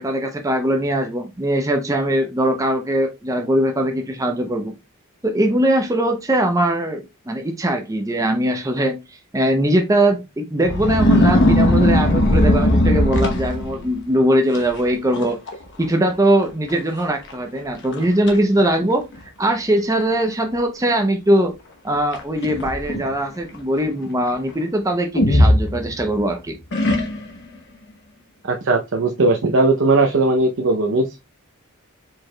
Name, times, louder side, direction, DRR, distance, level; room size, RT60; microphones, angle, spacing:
voice 1, 0.0-4.7 5.2-9.0 9.3-15.4 15.8-19.1 19.4-21.6 21.8-26.6, right 1 dB, 15° right, 0.6 m, -20 dB
sound 1, 10.6-13.9 14.5-14.8 15.1-15.5 15.8-15.9 16.7-16.8 17.3-17.4 17.9-18.4 19.2-19.3 22.1-23.1 25.1-26.2 26.7-27.4, left 1 dB, 55° left, 0.9 m, -18 dB
voice 2, 28.5-31.2, right 2 dB, 60° right, 0.7 m, -18 dB
4.6 x 4.6 x 2.2 m
head